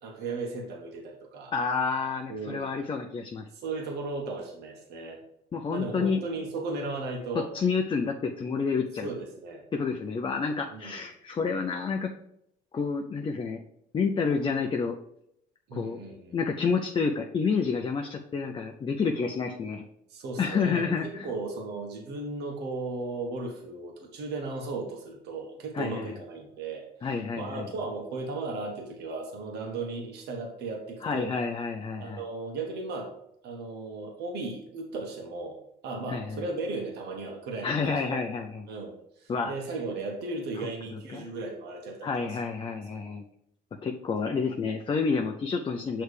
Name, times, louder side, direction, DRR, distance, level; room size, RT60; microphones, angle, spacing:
voice 1, 0.0-1.5 2.3-2.7 3.5-5.2 5.7-7.5 9.0-9.6 10.7-11.0 15.7-16.4 20.1-31.3 32.0-33.1 33.4-35.6 35.8-38.2 38.7-42.1 44.3-44.4, right 3 dB, 75° right, 0 dB, 1.3 m, -36 dB
voice 2, 1.5-3.5 5.5-6.2 7.3-9.1 9.7-12.1 12.7-13.6 13.9-14.9 15.7-16.0 16.3-19.8 20.4-21.3 25.7-26.1 27.0-27.7 31.0-32.2 36.1-36.4 37.6-38.7 39.3-39.5 40.9-41.3 42.0-43.3 43.8-46.0, left 5 dB, 30° left, 3 dB, 0.5 m, -29 dB
6.4 x 3.3 x 4.9 m, 0.76 s
cardioid pair, 110°, 17 cm